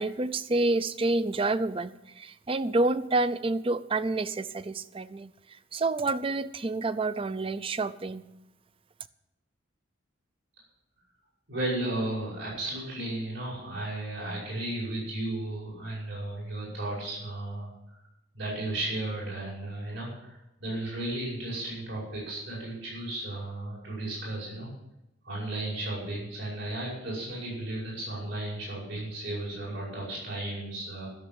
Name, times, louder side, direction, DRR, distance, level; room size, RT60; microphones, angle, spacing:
voice 1, 0.0-5.3 5.7-8.2, right 2 dB, 30° right, 15 dB, 0.5 m, -28 dB
voice 2, 11.5-17.7 18.3-24.7 25.2-31.1, right 1 dB, 65° right, -5 dB, 5.6 m, -34 dB
12.5 x 7.0 x 9.3 m, 0.90 s
head